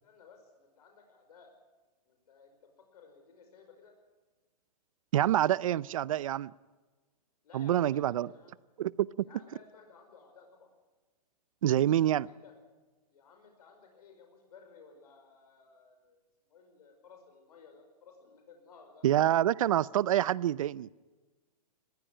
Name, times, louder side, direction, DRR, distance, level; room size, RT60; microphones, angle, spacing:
voice 1, 0.0-1.5 2.1-3.9 7.4-8.6 9.2-10.7 12.1-12.5 13.1-16.2 16.5-19.1, left 5 dB, 65° left, 5.3 m, -57 dB
voice 2, 5.1-6.5 7.5-8.3 8.8-9.3 11.6-12.3 19.0-20.9, right 12 dB, 55° right, 0.6 m, -27 dB
20.5 x 15.5 x 10.0 m
hypercardioid pair, 170°, 21 cm